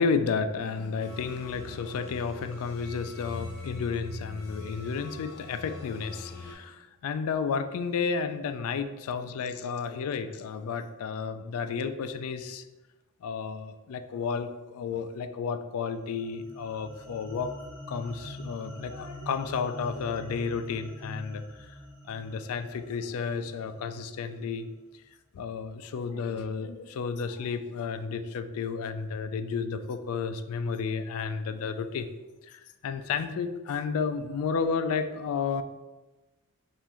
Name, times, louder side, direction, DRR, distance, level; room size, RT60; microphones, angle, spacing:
voice 1, 0.0-12.6 13.2-17.5 17.9-21.4 22.1-24.7 25.3-32.1 32.5-35.6, left 5 dB, 70° left, 9 dB, 0.3 m, -32 dB
sound 1, 1.0-6.5, left 3 dB, 45° left, 0.8 m, -43 dB
sound 2, 15.9-24.4, equal, 10° left, 0.7 m, -44 dB
5.4 x 2.5 x 3.0 m, 1.1 s
head